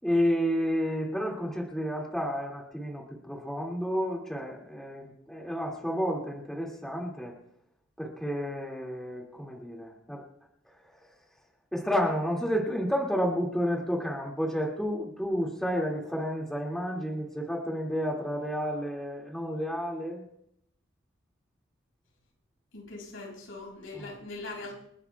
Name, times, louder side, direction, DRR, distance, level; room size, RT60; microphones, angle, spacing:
voice 1, 0.0-7.3 8.0-10.3 10.6-11.2 11.7-20.2 23.9-24.1, equal, 5° left, -3 dB, 2.2 m, -31 dB
voice 2, 22.7-24.7, left 2 dB, 80° left, -1 dB, 6.5 m, -41 dB
29.5 x 11.0 x 2.3 m, 0.73 s
head